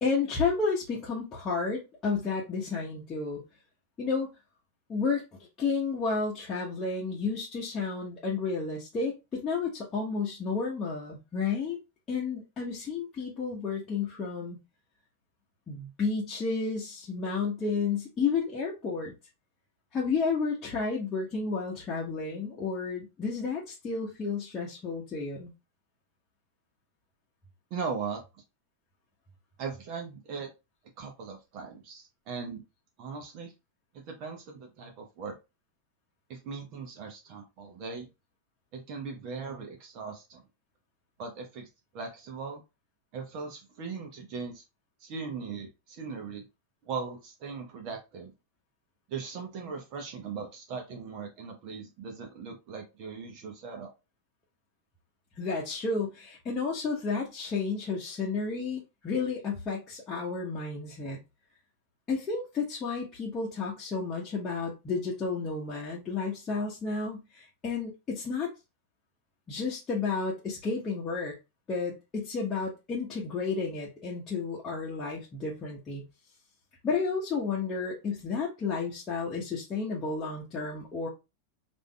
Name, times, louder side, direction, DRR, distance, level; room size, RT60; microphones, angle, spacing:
voice 1, 0.0-3.4 4.0-4.3 4.9-5.2 5.6-11.8 12.1-14.6 15.7-19.1 19.9-25.5 55.4-61.2 62.1-68.5 69.5-71.4 71.7-76.0 76.8-81.1, left 4 dB, 25° left, -5 dB, 1.0 m, -31 dB
voice 2, 27.7-28.2 29.6-30.5 31.0-32.6 33.0-33.5 33.9-35.3 36.3-38.1 38.7-40.4 41.2-41.7 41.9-42.6 43.1-44.6 45.0-46.4 46.8-48.3 49.1-53.9, right 5 dB, 40° right, 3 dB, 0.8 m, -39 dB
4.9 x 2.6 x 2.3 m, 0.26 s
figure-of-eight pair, 90°, 0 cm